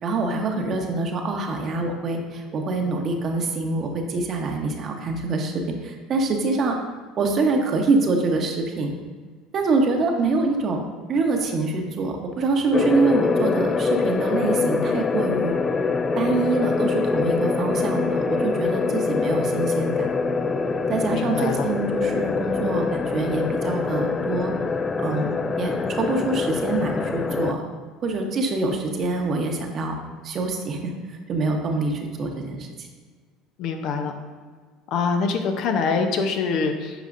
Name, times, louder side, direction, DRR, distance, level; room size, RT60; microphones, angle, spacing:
voice 1, 0.0-6.8 7.2-8.9 9.5-10.8 11.1-15.5 16.1-20.1 20.9-24.5 25.0-27.6 28.0-30.0 30.2-32.9, right 3 dB, 45° right, 3 dB, 1.0 m, -25 dB
sound 1, 12.7-27.5, left 4 dB, 30° left, 0.4 m, -24 dB
voice 2, 21.1-21.7 33.6-34.1 34.9-37.0, left 5 dB, 60° left, 5 dB, 0.7 m, -24 dB
9.2 x 4.9 x 2.6 m, 1.5 s
hypercardioid pair, 75°, 0 cm